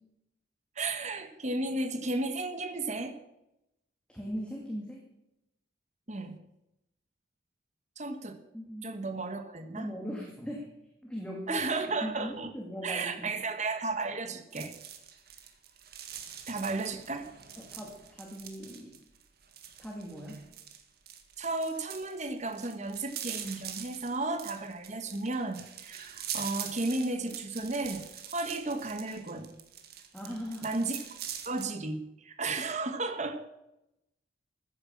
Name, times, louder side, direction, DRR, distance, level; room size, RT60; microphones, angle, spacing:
voice 1, 0.7-3.2 6.1-6.4 8.0-8.4 8.8-9.9 11.5-12.5 12.8-14.7 16.5-17.3 21.4-28.0 28.3-29.5 30.6-31.0 31.4-33.5, right 3 dB, 35° right, 7 dB, 1.4 m, -34 dB
voice 2, 4.1-5.0 8.5-9.0 9.8-10.7 11.0-11.6 12.0-13.3 17.6-18.9 19.8-20.4 30.1-30.7, equal, 5° left, -1 dB, 2.2 m, -39 dB
sound 1, 14.5-31.6, right 9 dB, 50° right, 1.9 m, -44 dB
14.5 x 9.9 x 7.4 m, 0.87 s
head